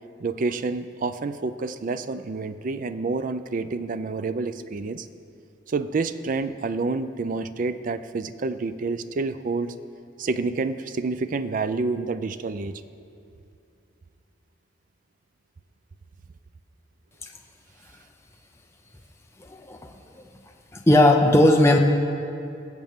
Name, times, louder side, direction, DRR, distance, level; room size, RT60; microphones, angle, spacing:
voice 1, 0.2-5.1 5.7-9.7 10.2-12.8, right 3 dB, 45° right, 12 dB, 0.4 m, -28 dB
voice 2, 20.7-21.8, left 1 dB, 15° left, 2 dB, 0.6 m, -17 dB
20.0 x 7.5 x 3.6 m, 2.6 s
head